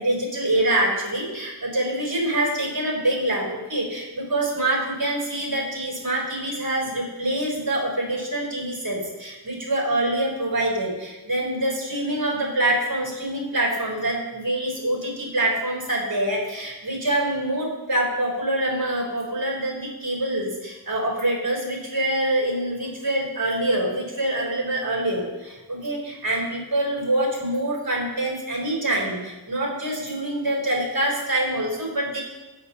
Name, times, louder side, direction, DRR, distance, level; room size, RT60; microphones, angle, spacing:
voice 1, 0.0-32.2, right 1 dB, 45° right, -1 dB, 4.1 m, -25 dB
18.0 x 8.4 x 3.1 m, 1.1 s
wide cardioid pair, 55°, 48 cm